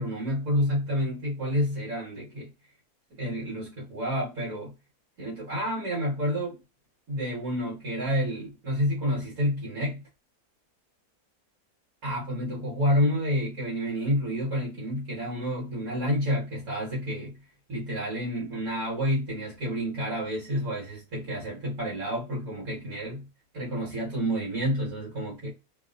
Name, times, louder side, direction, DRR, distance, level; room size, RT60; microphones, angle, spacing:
voice 1, 0.0-2.5 3.2-4.7 5.2-6.6 7.1-10.0 12.0-17.3 17.7-23.2 23.5-25.5, equal, 70° right, 1.8 m, -29 dB
3.4 x 2.5 x 2.4 m
omnidirectional pair, 1.6 m